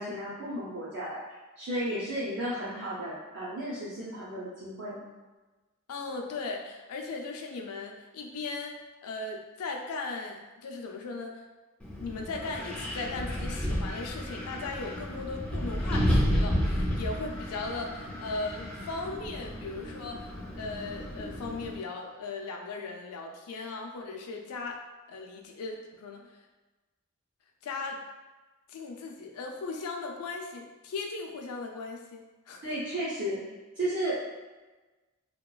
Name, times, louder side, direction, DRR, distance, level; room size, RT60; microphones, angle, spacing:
voice 1, 0.0-5.0 32.6-33.4 33.8-34.2, right 1 dB, 55° right, -9 dB, 0.5 m, -34 dB
voice 2, 5.9-11.4 12.0-24.8 25.1-26.3 27.6-28.0 28.7-32.6, left 3 dB, 80° left, 2 dB, 0.4 m, -38 dB
Wind, 11.8-21.8, equal, 5° left, 0.4 m, -32 dB
2.8 x 2.3 x 2.2 m, 1.2 s
head